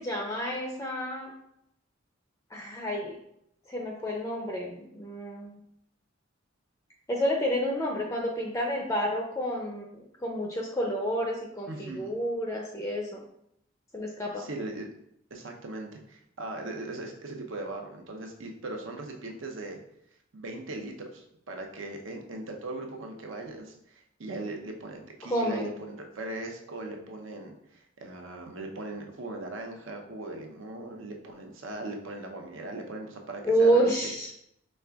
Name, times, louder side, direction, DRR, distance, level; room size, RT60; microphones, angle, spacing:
voice 1, 0.0-1.3 2.5-3.2 3.7-5.6 7.1-13.2 13.9-14.5 25.3-25.7 33.4-34.3, equal, 15° left, -1 dB, 0.4 m, -29 dB
voice 2, 11.7-12.1 14.4-14.9 15.3-19.8 20.3-34.0, right 2 dB, 75° right, 2 dB, 0.7 m, -39 dB
5.3 x 3.3 x 2.3 m, 0.75 s
head